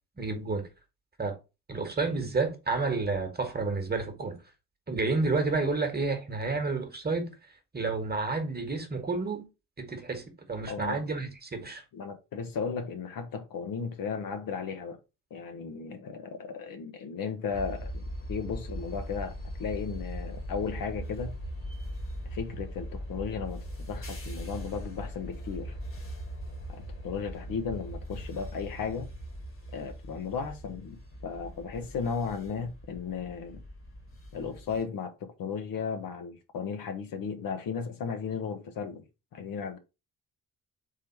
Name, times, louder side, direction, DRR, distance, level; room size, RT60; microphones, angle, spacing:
voice 1, 0.2-0.7 1.2-1.4 1.7-4.4 4.9-7.3 7.7-9.4 9.8-11.8, right 3 dB, 25° right, 1.4 m, -30 dB
voice 2, 10.7-11.0 11.9-15.0 15.3-19.3 19.6-21.3 22.3-25.8 26.7-29.1 29.7-33.6 34.3-39.0 39.3-39.8, left 6 dB, 55° left, 0.9 m, -35 dB
sound 1, 17.5-34.8, equal, 30° left, 1.5 m, -40 dB
3.7 x 3.2 x 4.4 m
hypercardioid pair, 45°, 41 cm